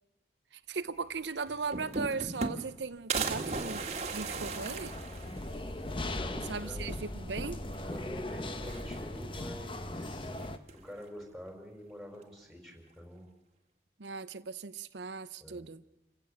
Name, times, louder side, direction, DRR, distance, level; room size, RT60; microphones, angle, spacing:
voice 1, 0.5-4.9 6.4-7.6 14.0-15.8, right 4 dB, 85° right, 0.7 m, -38 dB
sound 1, 1.1-1.2 1.5-2.8 3.1-5.7 6.1-6.2 6.5-6.6 7.7-8.2 8.6-9.3 10.3-10.9, right 4 dB, 40° right, 1.9 m, -37 dB
sound 2, 3.7-10.6, left 1 dB, 30° left, 1.1 m, -39 dB
voice 2, 6.0-6.9 7.9-10.4 10.7-13.3 15.4-15.7, equal, ahead, 5.3 m, -47 dB
28.5 x 15.5 x 8.5 m
head